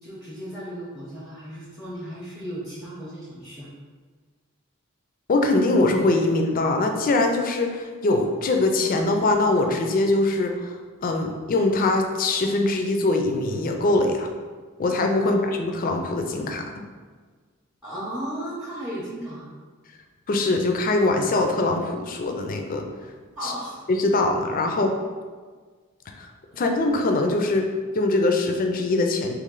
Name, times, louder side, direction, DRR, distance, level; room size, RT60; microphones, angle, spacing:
voice 1, 0.0-3.7 15.2-15.4 17.8-19.5 23.4-23.8 26.5-26.7, right 1 dB, 5° right, -7 dB, 0.6 m, -35 dB
voice 2, 5.3-14.3 14.8-16.7 20.3-22.9 23.4-23.5 23.9-25.0 26.2-26.3 26.6-29.3, left 2 dB, 40° left, 4 dB, 0.4 m, -22 dB
3.2 x 3.0 x 3.7 m, 1.5 s
head